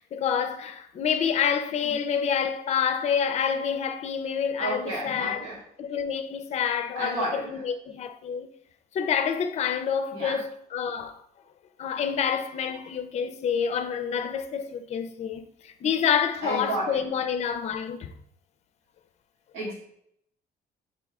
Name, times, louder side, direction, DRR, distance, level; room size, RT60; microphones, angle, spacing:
voice 1, 0.0-5.5 5.8-8.5 8.9-11.2 11.8-18.1, left 7 dB, 40° left, 0.4 m, -28 dB
voice 2, 4.6-5.6 6.9-7.6 10.1-10.4 16.4-17.0 19.5-19.7, right 2 dB, 85° right, 1.2 m, -32 dB
5.3 x 2.7 x 3.5 m
cardioid pair, 110°, 17 cm